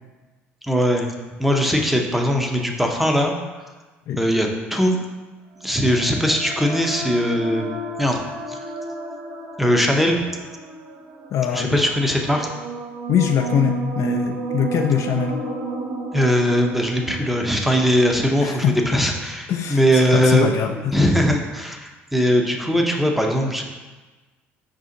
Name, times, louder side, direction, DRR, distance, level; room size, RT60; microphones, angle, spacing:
voice 1, 0.7-1.1 1.4-3.3 4.2-5.0 5.6-7.7 8.0-8.2 8.5-8.6 9.6-10.2 11.5-12.5 16.1-20.5 20.9-23.6, equal, ahead, 2 dB, 0.6 m, -20 dB
sound 1, 5.6-19.2, right 3 dB, 65° right, 0.6 m, -32 dB
voice 2, 11.3-11.8 13.1-15.4 18.4-18.8 19.5-20.9, left 8 dB, 55° left, 4 dB, 0.4 m, -22 dB
4.9 x 2.7 x 3.7 m, 1.2 s
hypercardioid pair, 65°, 6 cm